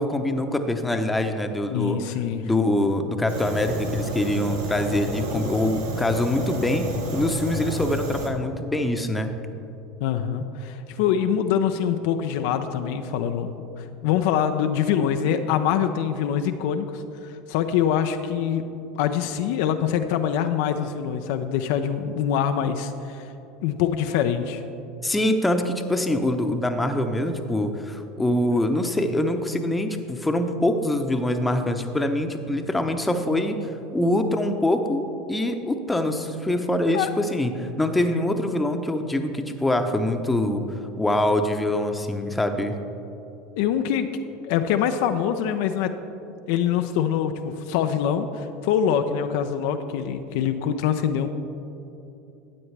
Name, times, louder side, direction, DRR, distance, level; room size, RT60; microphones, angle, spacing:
voice 1, 0.0-2.0 2.4-9.4 25.0-33.6 33.9-40.6 41.0-42.8, left 1 dB, 10° left, 6 dB, 0.8 m, -24 dB
voice 2, 1.7-2.5 10.0-18.6 19.0-23.3 23.6-24.6 36.9-37.1 43.6-44.1 44.5-45.9 46.5-51.3, left 8 dB, 65° left, 7 dB, 0.5 m, -24 dB
Fire, 3.3-8.3, right 1 dB, 75° right, 1.4 m, -30 dB
12.5 x 8.7 x 3.3 m, 2.9 s
hypercardioid pair, 80°, 0 cm